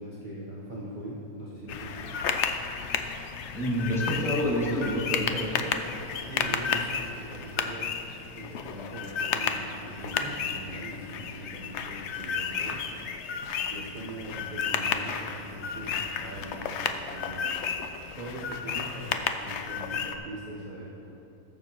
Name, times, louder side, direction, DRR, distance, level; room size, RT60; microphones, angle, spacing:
voice 1, 0.0-2.1 6.3-7.9 8.3-12.8 13.7-17.7 18.2-21.1, right 1 dB, 35° right, -5 dB, 1.1 m, -41 dB
sound 1, 1.7-20.2, left 6 dB, 60° left, 0.7 m, -32 dB
voice 2, 3.5-5.7, equal, ahead, -7 dB, 2.1 m, -28 dB
19.0 x 7.2 x 3.0 m, 2.9 s
omnidirectional pair, 1.6 m